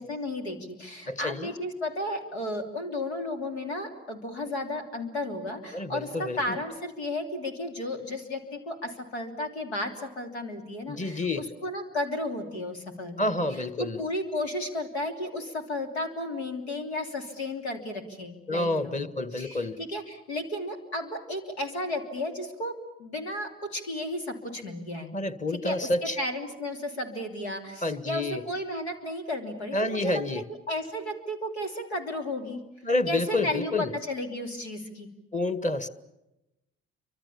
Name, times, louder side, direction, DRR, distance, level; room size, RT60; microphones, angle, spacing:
voice 1, 0.0-19.1 19.3-25.1 25.6-32.6 33.1-35.1, left 1 dB, 85° left, 5 dB, 3.0 m, -34 dB
voice 2, 1.1-1.5 5.7-6.6 10.9-11.4 13.2-14.0 18.5-19.8 25.1-26.2 27.8-28.4 29.7-30.4 32.8-33.9 35.3-35.9, left 2 dB, 25° left, 12 dB, 2.0 m, -29 dB
29.5 x 25.0 x 7.2 m, 0.96 s
hypercardioid pair, 50°, 32 cm